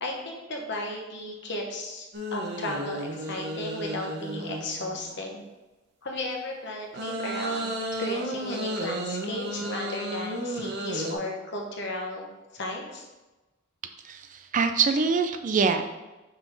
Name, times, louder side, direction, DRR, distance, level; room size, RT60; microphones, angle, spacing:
voice 1, 0.0-5.4 6.0-7.7 8.0-12.3 12.5-13.1, left 1 dB, 60° left, 1 dB, 1.1 m, -34 dB
sound 1, 2.1-5.2 6.9-11.2, right 1 dB, 55° right, 0.9 m, -33 dB
voice 2, 14.0-15.8, right 5 dB, 40° right, 8 dB, 0.4 m, -24 dB
5.6 x 4.4 x 4.0 m, 1.1 s
head